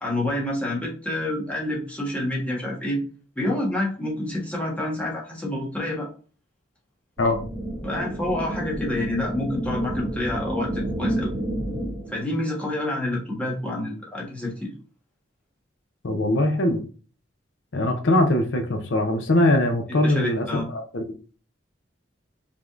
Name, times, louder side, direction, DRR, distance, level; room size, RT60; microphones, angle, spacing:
voice 1, 0.0-3.0 3.3-6.1 7.8-11.3 12.1-14.7 20.0-20.7, left 1 dB, 5° left, -4 dB, 1.3 m, -28 dB
sound 1, 7.2-12.2, right 1 dB, 20° right, 2.2 m, -30 dB
voice 2, 16.0-16.8 17.7-21.3, left 1 dB, 75° left, 5 dB, 0.7 m, -22 dB
4.9 x 3.6 x 2.5 m, 0.39 s
head